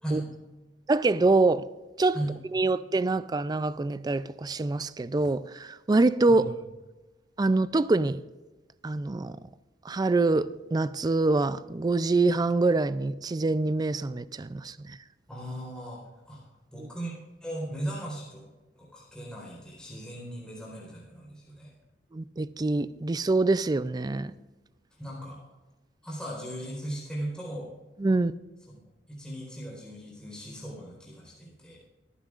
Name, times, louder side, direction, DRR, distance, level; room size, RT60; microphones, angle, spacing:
voice 1, 0.9-1.7 2.0-2.2 2.5-6.4 7.4-8.2 8.8-9.4 9.8-15.0 16.8-16.9 22.1-24.3 28.0-28.3, right 3 dB, 20° right, 0.3 m, -25 dB
voice 2, 15.3-16.0 16.3-16.4 16.7-17.2 17.4-18.4 18.8-21.7 25.0-25.4 26.0-27.7 28.7-28.8 29.1-31.8, right 1 dB, 5° left, 4.2 m, -37 dB
25.5 x 10.0 x 2.5 m
head